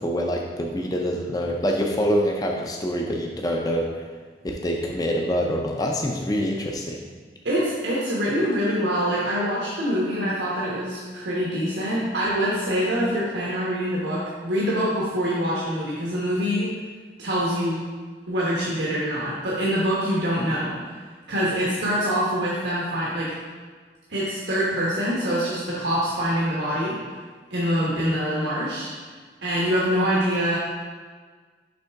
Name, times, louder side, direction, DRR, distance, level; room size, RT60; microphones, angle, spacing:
voice 1, 0.0-4.1 4.4-7.1, equal, 20° left, 1 dB, 0.5 m, -25 dB
voice 2, 7.4-16.7 17.2-17.9 18.3-20.8 21.3-23.4 24.1-27.0 27.5-28.9 29.4-30.6, equal, 85° right, -6 dB, 1.2 m, -25 dB
6.6 x 5.4 x 3.5 m, 1.5 s
head